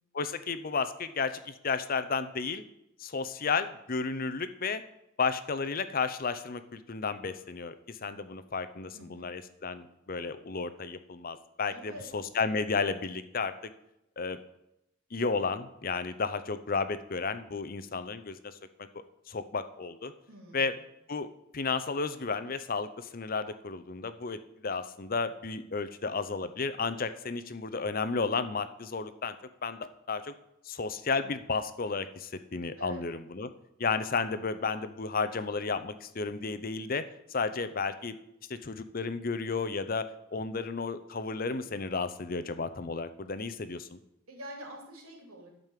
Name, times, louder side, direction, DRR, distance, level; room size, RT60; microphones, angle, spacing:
voice 1, 0.1-2.6 3.0-4.8 5.2-13.7 14.2-14.4 15.1-18.5 19.3-20.1 20.5-20.7 21.1-29.3 29.6-30.3 30.7-33.5 33.8-37.0 37.3-38.2 38.5-40.0 40.3-44.0, left 4 dB, 45° left, 12 dB, 0.7 m, -33 dB
voice 2, 8.9-9.3 11.7-12.1 20.3-20.7 32.8-33.0 44.3-45.5, equal, 90° right, 0 dB, 3.3 m, -45 dB
12.5 x 5.3 x 7.4 m, 0.85 s
head